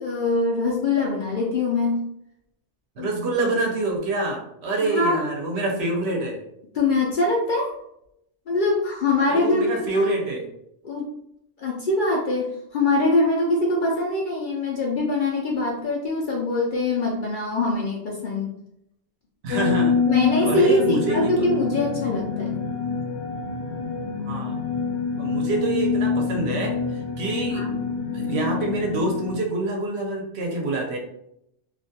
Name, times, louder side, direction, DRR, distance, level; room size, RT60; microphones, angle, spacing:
voice 1, 0.0-2.0 3.0-3.1 4.8-5.2 6.7-7.7 8.5-10.1 10.8-11.1 11.6-18.5 20.1-22.6 27.5-27.7, left 2 dB, 60° left, -2 dB, 0.5 m, -23 dB
voice 2, 3.0-6.4 9.3-10.5 19.4-20.0 20.4-21.5 24.2-24.5 25.2-27.6 28.1-31.0, right 2 dB, 70° right, 0 dB, 0.8 m, -26 dB
sound 1, 19.5-29.4, left 5 dB, 80° left, 0.9 m, -26 dB
2.4 x 2.2 x 2.7 m, 0.77 s
omnidirectional pair, 1.2 m